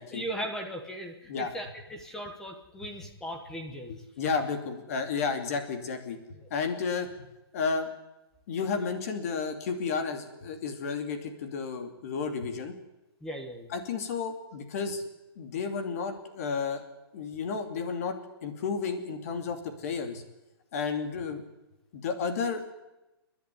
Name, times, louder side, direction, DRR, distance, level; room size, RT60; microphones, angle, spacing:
voice 1, 0.1-4.0 6.4-6.5 13.2-13.7, equal, 5° left, 3 dB, 1.1 m, -38 dB
voice 2, 3.9-7.1 7.5-7.9 8.5-12.7 13.7-15.0 15.4-16.8 17.1-20.2 20.7-21.4 21.9-22.7, left 5 dB, 35° left, 6 dB, 2.8 m, -32 dB
29.0 x 10.5 x 9.8 m, 1.0 s
hypercardioid pair, 170°, 13 cm